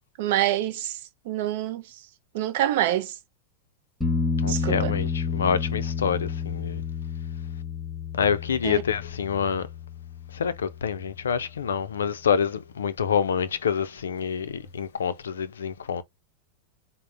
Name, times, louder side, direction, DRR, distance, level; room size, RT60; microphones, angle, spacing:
voice 1, 0.2-1.0 1.3-1.8 2.3-3.1 4.5-4.9 8.6-8.8, right 13 dB, 50° right, 0.5 m, -26 dB
sound 1, 4.0-11.6 14.7-14.8, left 5 dB, 5° left, 0.7 m, -30 dB
voice 2, 4.4-6.8 8.1-9.7 10.3-16.0, left 7 dB, 65° left, 0.4 m, -27 dB
3.7 x 2.0 x 3.3 m
figure-of-eight pair, 90°, 0 cm